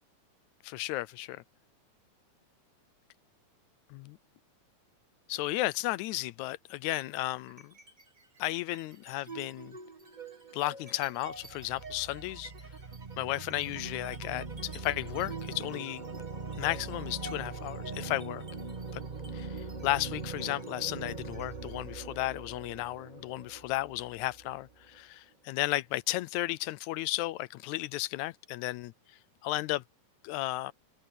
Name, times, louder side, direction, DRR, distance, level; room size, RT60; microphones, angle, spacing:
voice 1, 0.6-1.4 3.9-4.2 5.3-7.7 8.4-9.8 10.5-12.5 13.2-16.0 16.6-18.4 18.9-19.0 19.3-19.5 19.8-28.9 29.4-29.8 30.2-30.7, left 17 dB, 80° left, 2.0 m, -34 dB
sound 1, 7.5-8.0 8.4-25.0, right 4 dB, 60° right, 0.4 m, -42 dB
open air
omnidirectional pair, 3.4 m